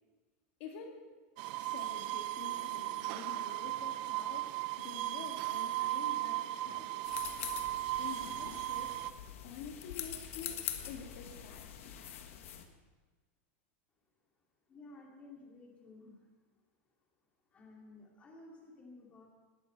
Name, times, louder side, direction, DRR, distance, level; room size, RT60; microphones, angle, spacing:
voice 1, 0.6-1.0 1.6-7.3 8.0-9.0 9.4-12.4, left 6 dB, 55° left, 2 dB, 1.9 m, -48 dB
sound 1, 1.4-9.1, right 16 dB, 45° right, 0.6 m, -37 dB
sound 2, 7.0-12.6, left 10 dB, 80° left, 1.6 m, -44 dB
voice 2, 14.7-16.3 17.5-19.3, left 2 dB, 15° left, -1 dB, 2.6 m, -54 dB
20.0 x 12.0 x 4.6 m, 1.3 s
supercardioid pair, 170°, 7 cm